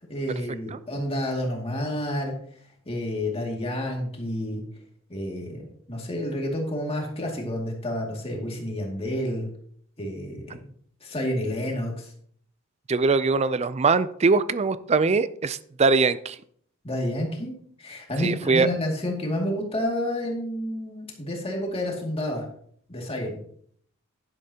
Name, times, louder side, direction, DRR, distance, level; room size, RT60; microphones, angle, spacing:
voice 1, 0.1-2.4 2.9-4.6 5.1-5.6 5.9-9.5 10.0-10.7 11.0-12.1 16.8-17.5 17.8-22.4 22.9-23.4, left 1 dB, 25° left, 0 dB, 2.3 m, -29 dB
voice 2, 12.9-16.4 18.2-18.7, right 4 dB, 30° right, 15 dB, 0.4 m, -22 dB
11.0 x 10.5 x 2.9 m, 0.62 s
head